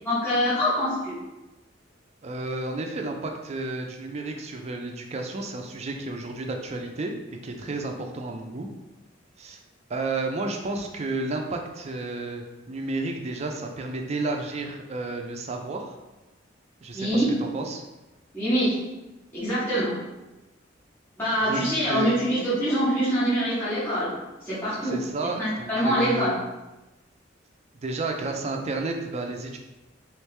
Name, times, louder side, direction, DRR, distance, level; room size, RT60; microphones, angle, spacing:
voice 1, 0.0-1.1 16.9-17.4 18.3-18.9 19.3-20.0 21.2-24.1 24.4-25.0 25.4-26.4, equal, 15° left, -13 dB, 1.3 m, -24 dB
voice 2, 2.2-7.1 7.4-8.7 9.4-9.6 9.9-15.9 16.8-17.8 21.4-22.1 24.8-26.3 27.8-29.6, right 2 dB, 35° right, 3 dB, 0.4 m, -31 dB
3.2 x 3.1 x 3.3 m, 1.0 s
head